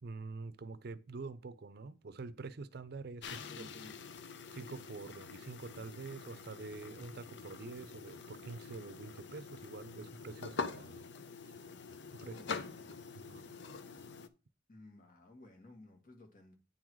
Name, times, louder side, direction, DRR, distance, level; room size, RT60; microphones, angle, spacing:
voice 1, 0.0-3.7 4.5-11.1 11.4-11.6 12.1-12.4 13.1-13.5, right 3 dB, 60° right, 0.5 m, -46 dB
sound 1, 3.2-14.3, left 4 dB, 70° left, 0.6 m, -46 dB
voice 2, 3.2-4.0 12.2-13.0 14.7-16.5, left 2 dB, 50° left, 1.8 m, -56 dB
9.4 x 3.9 x 4.6 m
head